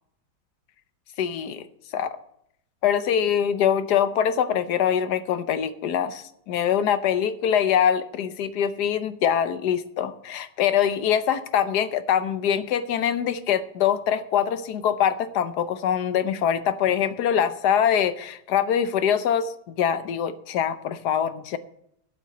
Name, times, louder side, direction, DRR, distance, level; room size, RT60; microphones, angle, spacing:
voice 1, 1.2-1.7 1.9-2.2 2.8-21.6, left 9 dB, 70° left, 12 dB, 1.3 m, -24 dB
8.1 x 7.8 x 8.7 m, 0.73 s
omnidirectional pair, 1.9 m